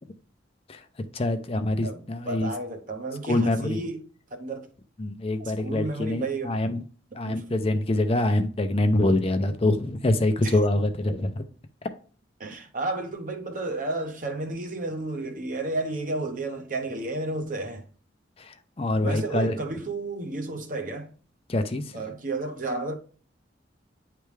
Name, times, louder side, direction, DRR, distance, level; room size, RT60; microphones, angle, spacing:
voice 1, 1.1-2.5 3.3-3.8 5.0-6.8 7.1-11.4 18.4-19.6 21.5-22.0, left 1 dB, 30° left, 0.5 m, -25 dB
voice 2, 1.8-4.0 4.3-4.7 5.4-6.6 7.2-7.5 10.4-10.5 12.4-17.8 19.0-21.1 21.9-22.9, right 2 dB, 45° right, 0.8 m, -32 dB
9.3 x 3.4 x 3.2 m
head